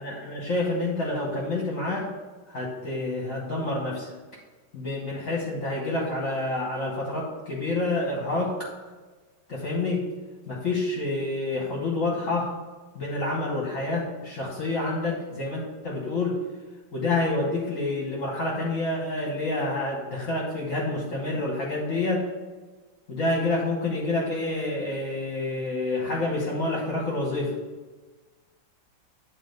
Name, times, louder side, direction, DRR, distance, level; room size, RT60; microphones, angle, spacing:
voice 1, 0.0-2.1 2.5-4.1 4.7-8.6 9.5-10.1 10.5-12.5 12.9-16.4 16.9-22.3 23.1-27.5, left 2 dB, 45° left, -3 dB, 1.5 m, -28 dB
9.0 x 4.0 x 5.3 m, 1.3 s
omnidirectional pair, 2.1 m